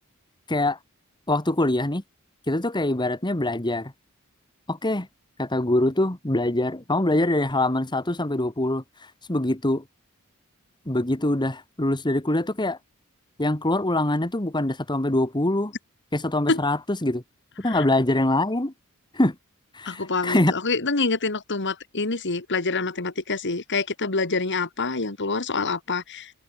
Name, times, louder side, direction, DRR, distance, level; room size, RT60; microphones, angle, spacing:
voice 1, 0.5-0.8 1.3-2.0 2.5-3.9 4.7-5.1 5.4-9.8 10.8-12.8 13.4-15.7 16.1-17.2 17.6-18.7 19.1-19.3 19.7-20.5, left 1 dB, 20° left, 1.8 m, -24 dB
voice 2, 19.8-26.3, left 3 dB, 55° left, 2.4 m, -26 dB
head